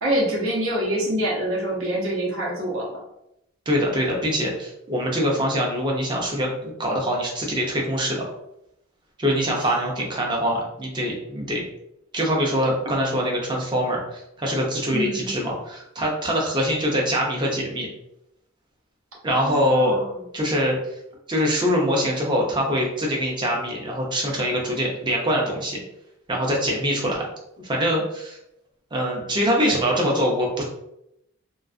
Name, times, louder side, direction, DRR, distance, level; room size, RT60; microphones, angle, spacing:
voice 1, 0.0-3.0 9.6-9.7 14.9-15.4 19.3-20.1, right 1 dB, 70° right, -2 dB, 0.7 m, -26 dB
voice 2, 3.7-8.2 9.2-11.6 12.1-17.9 19.2-20.0 20.3-20.8 21.3-25.8 26.3-27.3 27.6-28.4 28.9-30.6, equal, 20° right, -2 dB, 0.5 m, -23 dB
2.4 x 2.3 x 2.4 m, 0.81 s
head